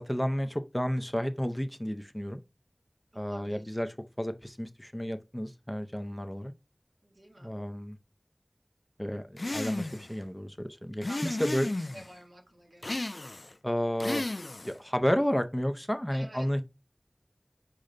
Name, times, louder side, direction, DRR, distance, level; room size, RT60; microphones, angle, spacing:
voice 1, 0.0-2.4 3.2-6.5 7.4-8.0 9.0-11.7 13.6-14.2 14.6-16.6, equal, 10° left, 0.6 m, -31 dB
voice 2, 3.1-3.6 7.0-7.5 11.0-11.5 11.8-13.0 16.1-16.5, right 1 dB, 80° right, 2.2 m, -49 dB
sound 1, 9.4-10.1 11.0-12.1 12.8-13.5 14.0-14.8, left 2 dB, 75° left, 0.4 m, -34 dB
6.5 x 2.2 x 3.7 m
wide cardioid pair, 40°, 0 cm